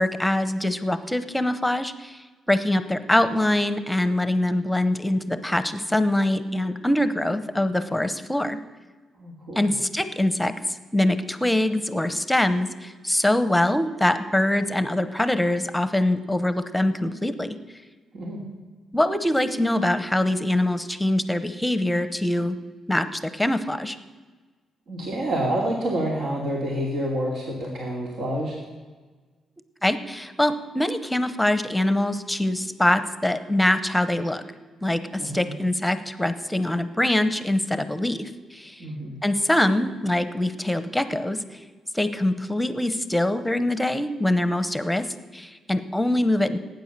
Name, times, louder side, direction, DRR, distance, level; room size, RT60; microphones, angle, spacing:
voice 1, 0.0-2.2 2.5-8.6 9.5-17.6 18.9-22.6 22.9-24.0 29.8-34.4 34.8-38.8 39.2-41.4 41.9-45.1 45.3-46.6, left 1 dB, 5° left, 11 dB, 1.0 m, -23 dB
voice 2, 9.2-9.7 18.1-18.4 24.9-28.6 35.2-35.5 38.8-39.1, right 1 dB, 65° right, -1 dB, 2.7 m, -28 dB
18.0 x 9.3 x 6.8 m, 1.4 s
cardioid pair, 90°, 0 cm